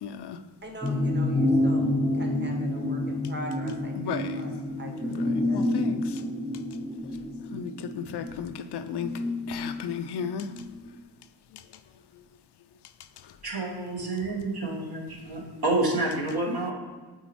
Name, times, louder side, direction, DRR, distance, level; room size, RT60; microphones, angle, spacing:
voice 1, 0.0-0.4 4.0-4.5 5.1-6.2 7.5-9.2 9.5-10.5 11.5-11.6 13.2-13.4, left 7 dB, 75° left, 10 dB, 0.5 m, -35 dB
voice 2, 0.6-5.6, right 1 dB, 25° right, 1 dB, 1.2 m, -43 dB
sound 1, 0.8-10.7 11.0-11.1, left 1 dB, 10° left, 0.7 m, -28 dB
voice 3, 13.4-16.7, right 2 dB, 65° right, -2 dB, 1.5 m, -29 dB
8.0 x 4.0 x 3.0 m, 1.3 s
cardioid pair, 55°, 41 cm